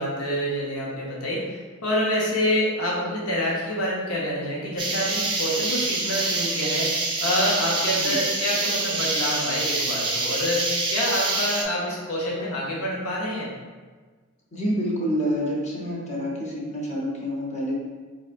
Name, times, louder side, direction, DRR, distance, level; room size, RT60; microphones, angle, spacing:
voice 1, 0.0-13.5, equal, 80° left, -4 dB, 0.7 m, -27 dB
sound 1, 4.8-11.6, right 3 dB, 20° right, 0.4 m, -26 dB
voice 2, 14.5-17.7, equal, 30° left, -3 dB, 0.7 m, -27 dB
4.1 x 3.3 x 2.5 m, 1.4 s
head